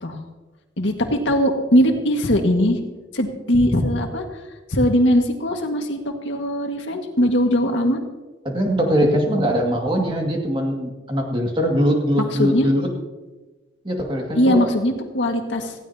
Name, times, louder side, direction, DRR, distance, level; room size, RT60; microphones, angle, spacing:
voice 1, 0.8-2.8 3.1-4.2 4.7-6.0 6.2-8.0 12.4-12.7 14.3-15.7, equal, 85° left, 3 dB, 1.8 m, -20 dB
voice 2, 8.4-12.9 13.8-14.7, equal, 25° right, 1 dB, 2.2 m, -21 dB
18.5 x 15.5 x 2.9 m, 1.2 s
head